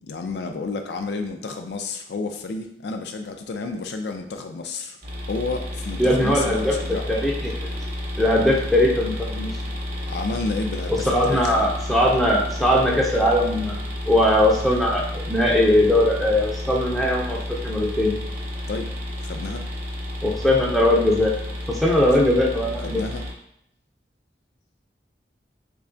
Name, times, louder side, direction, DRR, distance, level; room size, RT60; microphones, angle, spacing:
voice 1, 0.0-5.0 5.3-7.1 10.1-11.6 18.7-18.9 19.2-19.7 22.8-23.2, left 3 dB, 70° left, 6 dB, 0.4 m, -30 dB
sound 1, 5.0-23.3, left 1 dB, 35° right, 0.9 m, -31 dB
voice 2, 6.0-6.8 7.1-7.5 8.2-9.5 10.9-13.8 14.1-18.2 20.2-21.3 21.7-23.0, left 1 dB, ahead, -2 dB, 0.5 m, -20 dB
3.2 x 2.3 x 3.7 m, 0.74 s
head